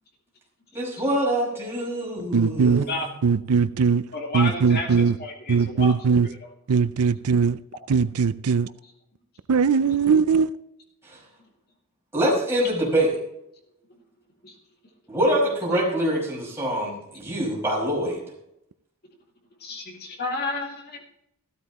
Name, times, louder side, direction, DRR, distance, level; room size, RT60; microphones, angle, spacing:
voice 1, 0.7-2.9 12.1-13.1 15.1-18.2, right 1 dB, 10° right, 5.4 m, -24 dB
voice 2, 2.3-2.9 3.2-4.0 4.3-5.1 5.5-6.3 6.7-7.6 7.9-8.7 9.5-10.5, right 5 dB, 85° right, 0.5 m, -20 dB
voice 3, 4.1-6.4 14.4-14.5 19.6-21.1, left 2 dB, 45° left, 2.3 m, -32 dB
15.0 x 13.0 x 3.0 m
head